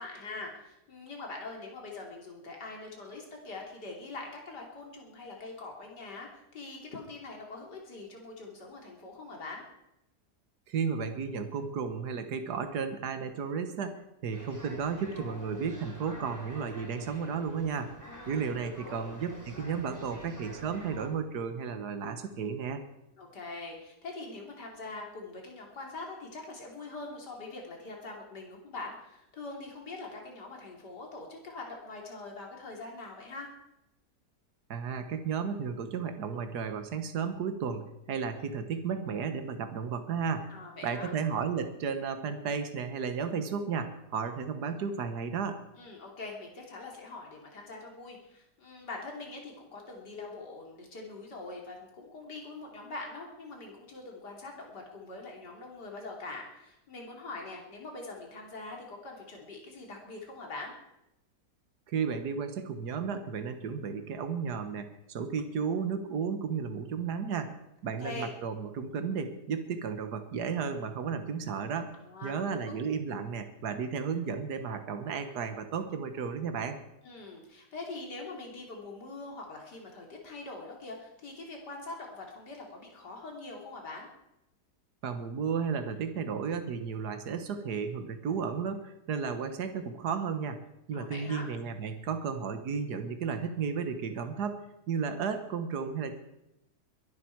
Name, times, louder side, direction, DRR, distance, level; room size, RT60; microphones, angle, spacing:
voice 1, 0.0-9.6 18.1-19.1 23.2-33.5 40.5-41.1 45.8-60.7 68.0-68.3 72.0-72.8 77.0-84.1 90.9-91.5, left 3 dB, 80° left, 0 dB, 3.6 m, -43 dB
voice 2, 10.7-17.9 18.3-22.8 34.7-40.5 40.8-45.6 61.9-67.5 67.8-71.9 72.2-76.8 85.0-90.6 90.9-94.6 94.9-96.2, right 6 dB, 70° right, 8 dB, 1.9 m, -33 dB
sound 1, 14.3-21.1, equal, 10° right, 2.9 m, -47 dB
22.5 x 12.0 x 4.7 m, 0.87 s
omnidirectional pair, 1.8 m